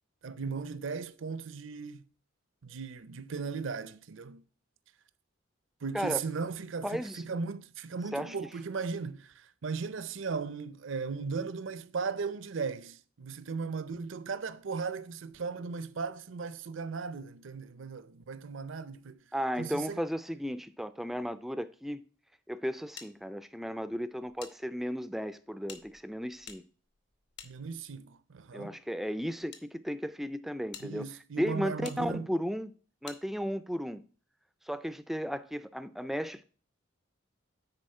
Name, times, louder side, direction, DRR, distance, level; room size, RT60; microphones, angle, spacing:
voice 1, 0.2-2.1 2.6-4.4 5.8-19.2 19.6-20.0 27.4-28.8 30.8-32.3, right 5 dB, 65° right, 0.6 m, -37 dB
voice 2, 6.8-7.2 8.1-8.4 19.3-22.0 22.5-26.6 28.5-31.0 31.4-32.7 33.0-34.0 34.7-36.4, equal, ahead, 0.3 m, -34 dB
sound 1, 23.0-24.5 24.8-24.9 25.6-28.1 28.9-29.6 30.2-30.3 30.7-30.9 31.8-32.0 33.0-33.2, left 7 dB, 55° left, 1.0 m, -50 dB
9.8 x 4.3 x 4.3 m
head